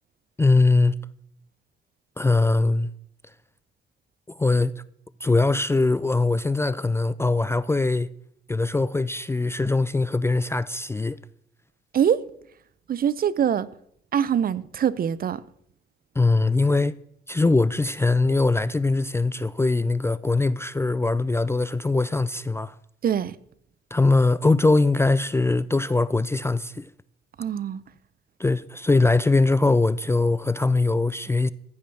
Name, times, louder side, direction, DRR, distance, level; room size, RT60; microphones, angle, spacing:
voice 1, 0.4-0.9 2.2-2.9 4.4-4.7 5.2-8.1 8.5-11.2 16.2-17.0 17.3-22.7 23.9-26.9 28.4-31.5, left 3 dB, 15° left, 0.3 m, -21 dB
voice 2, 12.9-13.7 14.1-15.4 23.0-23.3 27.4-27.8, right 9 dB, 45° right, 0.6 m, -23 dB
14.5 x 5.3 x 6.9 m
cardioid pair, 90°, 20 cm